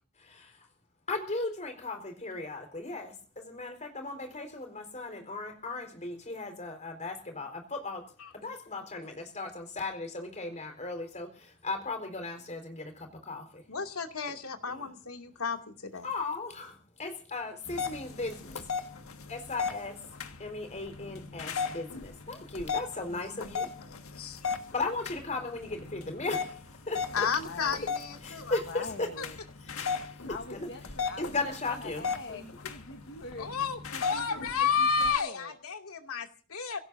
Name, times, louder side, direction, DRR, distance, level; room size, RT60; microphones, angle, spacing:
voice 1, 0.2-0.7 1.1-13.6 14.7-14.9 16.0-18.6 19.3-20.0 20.4-23.7 24.7-26.6 26.9-27.3 28.2-29.1 29.8-29.9 30.5-30.7 31.2-32.5, left 3 dB, 35° left, 5 dB, 4.4 m, -37 dB
voice 2, 13.7-16.1 23.1-23.5 23.9-24.4 27.1-28.6 29.2-29.3 33.4-36.8, left 6 dB, 90° left, 4 dB, 2.5 m, -32 dB
sound 1, 17.7-35.1, left 5 dB, 75° left, 1.7 m, -38 dB
voice 3, 27.4-28.0 28.6-29.4 30.3-33.5 33.9-35.6, left 3 dB, 55° left, 4 dB, 1.5 m, -44 dB
30.0 x 17.0 x 2.7 m, 0.40 s
head